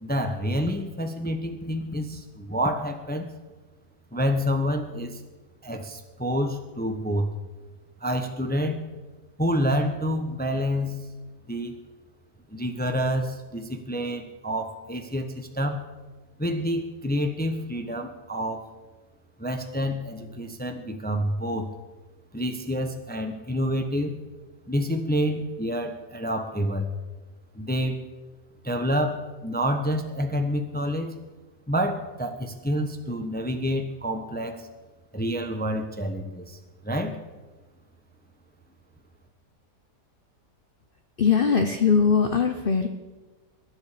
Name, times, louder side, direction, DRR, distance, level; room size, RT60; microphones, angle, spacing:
voice 1, 0.0-3.3 4.1-5.2 5.6-7.3 8.0-8.9 9.4-11.1 11.5-11.8 12.5-15.8 16.4-18.7 19.4-21.7 22.3-24.1 24.7-26.9 27.5-28.0 28.6-31.1 31.7-34.7 35.1-36.6 36.8-37.2, equal, 5° left, 5 dB, 0.8 m, -28 dB
voice 2, 41.2-42.9, left 6 dB, 40° left, 6 dB, 0.8 m, -21 dB
22.5 x 10.5 x 5.1 m, 1.2 s
omnidirectional pair, 1.8 m